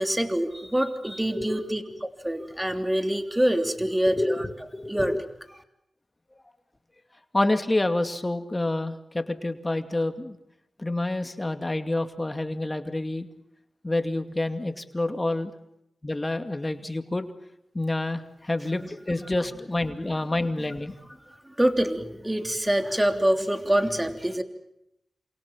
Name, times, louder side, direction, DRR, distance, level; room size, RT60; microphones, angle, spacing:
voice 1, 0.0-1.8 2.2-4.5 4.9-5.1 21.6-24.4, right 1 dB, 15° right, 6 dB, 3.2 m, -25 dB
voice 2, 1.4-1.8 4.1-5.2 7.3-10.4 10.8-13.3 13.8-15.5 16.0-17.3 17.7-20.9, left 2 dB, 25° left, 7 dB, 2.4 m, -28 dB
28.0 x 27.0 x 7.4 m, 0.85 s
cardioid pair, 40°, 0 cm